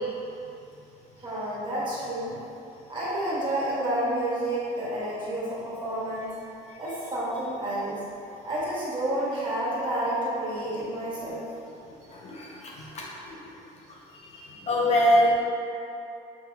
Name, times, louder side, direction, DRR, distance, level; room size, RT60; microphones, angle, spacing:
voice 1, 1.2-2.3 2.9-6.3 6.8-8.0 8.4-11.5, right 1 dB, 30° right, -9 dB, 1.4 m, -30 dB
voice 2, 12.2-13.4 14.3-15.3, equal, 40° left, -3 dB, 0.5 m, -24 dB
5.5 x 2.8 x 2.3 m, 2.7 s
cardioid pair, 110°, 17 cm